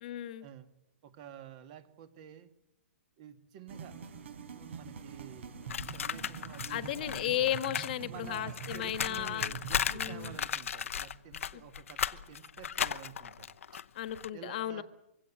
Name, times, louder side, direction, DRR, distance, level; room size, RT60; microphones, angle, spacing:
voice 1, 0.0-0.4 6.7-9.5 9.9-10.4 11.5-11.6 13.9-14.8, left 12 dB, 40° left, 11 dB, 1.4 m, -34 dB
voice 2, 1.0-2.5 3.2-4.0 4.5-7.5 8.0-13.8 14.3-14.8, right 9 dB, 35° right, 9 dB, 2.0 m, -50 dB
sound 1, 3.7-10.4, right 7 dB, 65° right, 4.8 m, -45 dB
sound 2, 5.7-7.9 8.2-14.3, left 8 dB, 80° left, 0.9 m, -36 dB
24.0 x 16.5 x 8.7 m, 0.84 s
hypercardioid pair, 165°, 7 cm